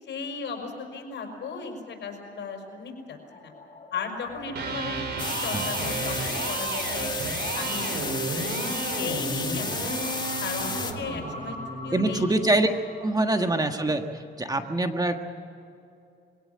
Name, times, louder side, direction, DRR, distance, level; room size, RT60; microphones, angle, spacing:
voice 1, 0.0-3.5 3.9-5.0 5.3-7.1 7.5-8.5 8.9-10.0 10.4-11.6 11.8-12.5 13.1-13.5, left 5 dB, 65° left, 3 dB, 5.8 m, -36 dB
sound 1, 1.2-14.1, left 1 dB, 40° left, 4.4 m, -47 dB
Electric guitar, 4.4-12.5, right 3 dB, 60° right, 5.0 m, -33 dB
sound 2, 5.2-10.9, left 3 dB, 20° left, 2.2 m, -32 dB
voice 2, 11.9-12.7 13.0-14.0 14.4-15.2, right 2 dB, 20° right, 6 dB, 1.5 m, -24 dB
23.0 x 17.5 x 8.8 m, 2.5 s
cardioid pair, 90°, 20 cm